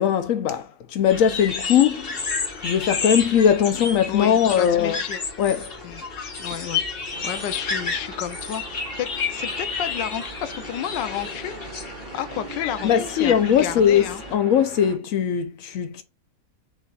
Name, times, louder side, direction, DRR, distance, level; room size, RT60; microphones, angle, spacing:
voice 1, 0.0-2.1 2.6-5.0 5.4-5.7 12.8-14.0 14.3-16.0, left 8 dB, 70° left, 0.8 m, -20 dB
sound 1, 1.1-14.3, left 4 dB, 35° left, 1.2 m, -31 dB
voice 2, 4.1-5.2 5.8-6.0 6.4-6.8 7.2-11.7 12.1-14.2, left 10 dB, 85° left, 1.3 m, -31 dB
sound 2, 7.1-15.0, right 5 dB, 80° right, 0.4 m, -42 dB
5.3 x 4.0 x 2.3 m
omnidirectional pair, 1.9 m